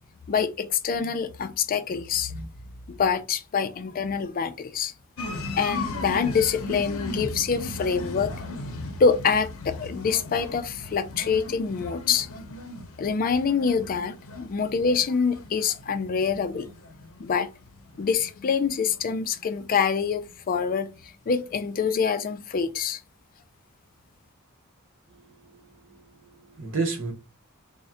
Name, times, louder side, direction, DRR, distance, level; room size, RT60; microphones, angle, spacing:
voice 1, 0.3-2.5 2.9-4.9 5.5-8.3 9.0-12.3 13.0-16.7 17.2-17.5 18.0-20.9 21.3-23.0, left 6 dB, 40° left, 0.4 m, -25 dB
sound 1, 5.2-20.7 21.0-21.8, left 2 dB, 65° left, 0.7 m, -38 dB
voice 2, 25.9-27.1, right 3 dB, 60° right, 0.9 m, -31 dB
3.6 x 2.1 x 4.2 m
head